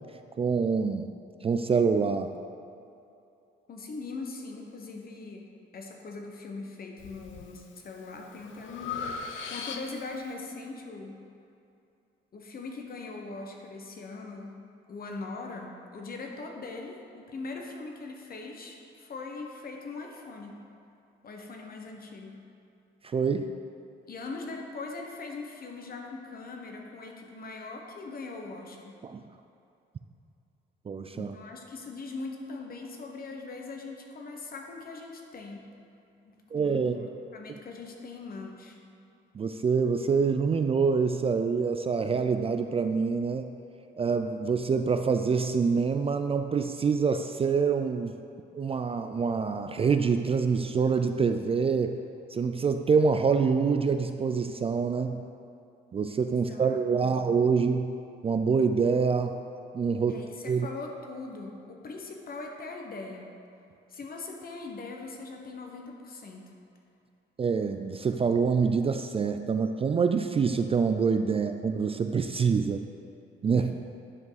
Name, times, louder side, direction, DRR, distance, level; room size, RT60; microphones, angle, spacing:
voice 1, 0.4-1.1 1.4-2.3 23.1-23.5 29.0-29.2 30.9-31.4 36.5-37.0 39.3-43.5 44.0-48.2 48.5-52.0 52.3-55.2 55.9-57.9 58.2-59.4 59.7-60.2 60.5-60.7 67.4-72.9 73.4-73.7, right 5 dB, 30° right, 7 dB, 0.3 m, -26 dB
voice 2, 3.7-9.0 9.5-11.2 12.3-14.5 14.9-20.6 21.2-22.4 24.1-29.0 31.1-35.6 36.2-37.0 37.3-38.8 56.3-57.2 60.1-63.3 63.9-66.5 71.3-71.4 73.6-73.7, left 3 dB, 50° left, 2 dB, 1.1 m, -41 dB
Breathing, 7.0-7.5 8.0-10.2, left 5 dB, 75° left, 0.6 m, -38 dB
9.6 x 5.3 x 4.0 m, 2.6 s
cardioid pair, 90°, 20 cm